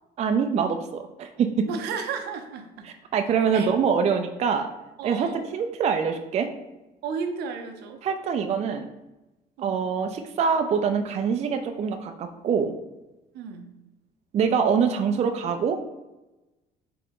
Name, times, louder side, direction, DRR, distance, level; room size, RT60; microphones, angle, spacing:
voice 1, 0.2-1.7 3.1-4.7 5.0-6.5 8.0-8.9 9.6-12.7 14.3-15.8, right 6 dB, 40° right, 6 dB, 0.4 m, -24 dB
voice 2, 1.7-2.9 3.5-3.7 5.0-5.4 7.0-8.0 9.6-9.8 13.3-13.7, right 5 dB, 80° right, 5 dB, 0.6 m, -33 dB
3.8 x 3.4 x 3.6 m, 1.0 s
cardioid pair, 110°, 17 cm